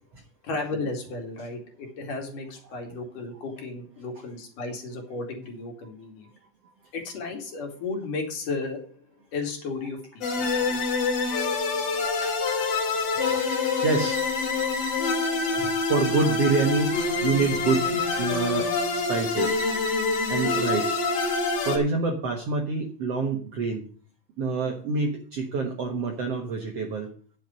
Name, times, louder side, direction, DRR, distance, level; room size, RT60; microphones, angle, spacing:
voice 1, 0.4-6.3 6.9-8.9 9.3-10.8, left 3 dB, 65° left, 2 dB, 3.9 m, -34 dB
sound 1, 10.2-21.8, left 4 dB, 45° left, 2.9 m, -26 dB
voice 2, 11.0-11.3 12.2-12.6 13.7-14.3 14.6-14.7 15.0-15.1 15.5-19.6 20.3-21.0 21.7-23.8 24.4-27.1, right 4 dB, 55° right, 2 dB, 2.0 m, -27 dB
10.0 x 7.8 x 5.4 m, 0.43 s
omnidirectional pair, 4.2 m